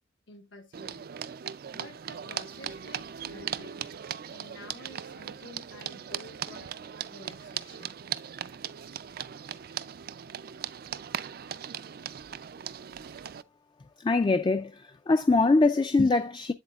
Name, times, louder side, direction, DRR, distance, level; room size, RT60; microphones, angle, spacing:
voice 1, 0.3-1.1 1.5-3.9 4.3-8.0, left 2 dB, 75° left, 1.3 m, -50 dB
sound 1, 0.7-13.4, right 9 dB, 55° right, 0.4 m, -39 dB
voice 2, 14.0-16.5, left 3 dB, 25° left, 0.4 m, -23 dB
8.0 x 7.9 x 2.4 m
head